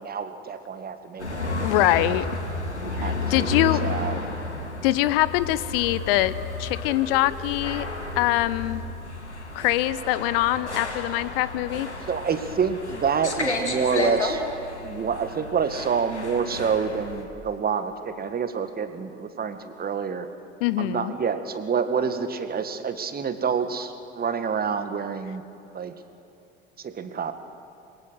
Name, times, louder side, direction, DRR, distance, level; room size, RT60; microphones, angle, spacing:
voice 1, 0.0-2.2 2.8-4.2 12.1-14.4 14.8-20.3 20.8-25.4 25.7-25.9 26.8-27.3, right 6 dB, 30° right, 9 dB, 1.9 m, -28 dB
sound 1, 1.2-17.2, left 3 dB, 90° left, 2.2 m, -32 dB
voice 2, 1.6-2.2 3.0-3.8 4.8-6.3 6.6-7.9 8.2-8.8 9.5-11.9 20.6-21.1, left 16 dB, 60° left, 16 dB, 0.8 m, -23 dB
28.0 x 22.5 x 6.4 m, 2.8 s
figure-of-eight pair, 70°, 33 cm